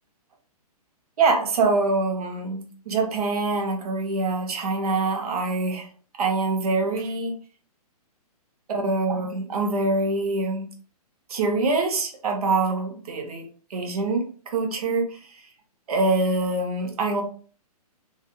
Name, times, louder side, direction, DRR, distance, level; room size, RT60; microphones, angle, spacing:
voice 1, 1.2-5.9 6.2-7.3 8.8-10.7 11.3-13.4 13.7-14.2 14.5-15.1 15.9-17.2, right 3 dB, 65° right, 3 dB, 0.8 m, -24 dB
2.3 x 2.0 x 2.9 m, 0.42 s
hypercardioid pair, 145°, 20 cm